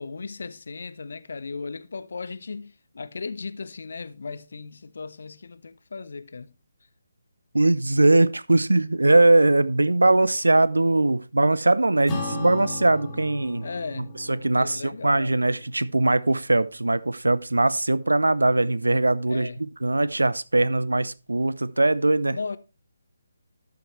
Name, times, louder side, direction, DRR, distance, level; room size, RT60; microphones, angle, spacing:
voice 1, 0.0-6.5 13.6-14.1 14.5-15.3 19.3-19.6 22.3-22.6, left 4 dB, 55° left, 0.7 m, -36 dB
voice 2, 7.5-13.7 14.0-19.5 19.8-22.4, right 2 dB, 75° right, 0.6 m, -21 dB
Acoustic guitar / Strum, 12.1-16.8, left 2 dB, 20° left, 2.9 m, -37 dB
12.0 x 7.9 x 3.2 m
figure-of-eight pair, 145°, 0 cm